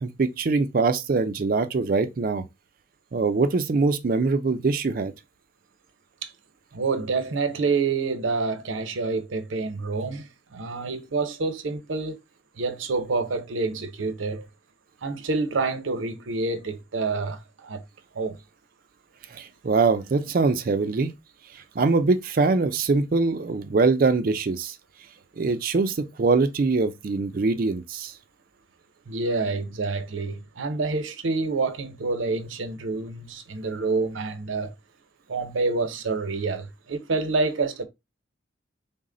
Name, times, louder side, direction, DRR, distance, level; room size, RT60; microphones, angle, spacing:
voice 1, 0.0-2.4 3.1-5.1 19.3-21.1 21.8-24.7 25.4-28.1, right 3 dB, 45° right, 0.4 m, -23 dB
voice 2, 6.7-12.2 12.6-14.5 15.0-17.8 18.1-18.4 29.1-34.7 35.3-37.8, right 3 dB, 85° right, 0.7 m, -27 dB
3.9 x 2.1 x 3.7 m
head